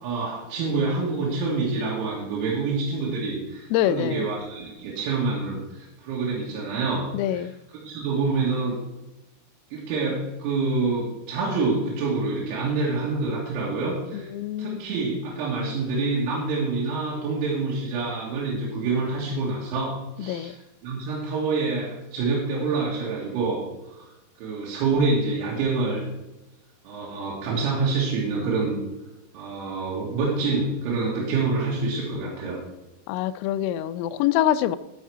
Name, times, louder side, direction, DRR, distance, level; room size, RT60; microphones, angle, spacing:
voice 1, 0.0-7.5 7.8-8.7 9.7-14.3 14.6-20.5 20.8-23.6 23.9-24.1 24.4-26.0 26.8-28.8 29.3-32.6, right 3 dB, 85° right, 4.6 m, -27 dB
voice 2, 3.7-4.3 7.1-7.5 14.1-14.8 20.2-20.6 33.1-34.8, left 12 dB, 85° left, 3.1 m, -25 dB
13.5 x 5.8 x 4.7 m
omnidirectional pair, 6.0 m